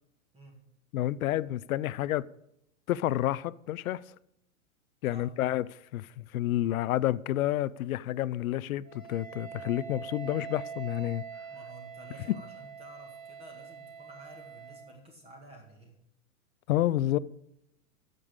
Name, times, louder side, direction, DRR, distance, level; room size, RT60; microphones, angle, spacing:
voice 1, 0.9-2.2 2.9-4.0 5.0-5.6 5.9-11.2 16.7-17.2, left 14 dB, 80° left, 0.6 m, -29 dB
Wind instrument woodwind instrument, 8.8-15.0, right 6 dB, 75° right, 2.7 m, -44 dB
voice 2, 11.5-16.0, right 1 dB, 15° right, 2.0 m, -51 dB
8.9 x 6.9 x 8.0 m
supercardioid pair, 155°, 41 cm